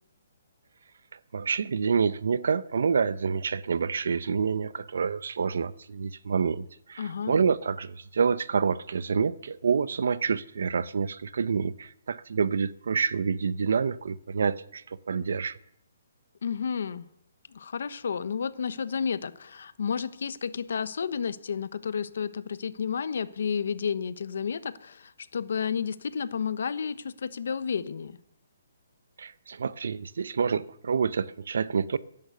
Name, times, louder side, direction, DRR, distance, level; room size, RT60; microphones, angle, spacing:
voice 1, 1.1-15.6 29.2-32.0, right 6 dB, 70° right, 0.7 m, -28 dB
voice 2, 7.0-7.3 16.4-17.1 17.5-28.2, left 6 dB, 65° left, 1.0 m, -31 dB
15.5 x 11.0 x 6.8 m
hypercardioid pair, 170°, 0 cm